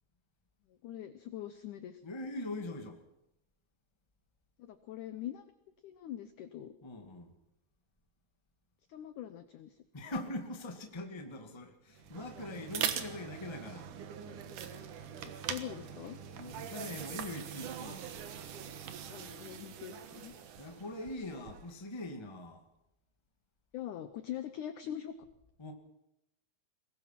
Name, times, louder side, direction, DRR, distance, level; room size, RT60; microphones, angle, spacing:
voice 1, 0.7-2.0 4.6-5.5 5.8-6.7 8.9-9.8 15.5-16.2 19.1-20.3 23.7-25.1, left 11 dB, 75° left, 10 dB, 1.9 m, -43 dB
voice 2, 2.0-3.0 6.8-7.3 9.9-13.9 16.3-18.1 20.6-22.6 25.6-25.7, left 1 dB, 15° left, 4 dB, 1.1 m, -42 dB
sound 1, 11.9-21.8, right 9 dB, 60° right, 2.5 m, -42 dB
22.5 x 20.5 x 5.9 m, 0.87 s
omnidirectional pair, 4.6 m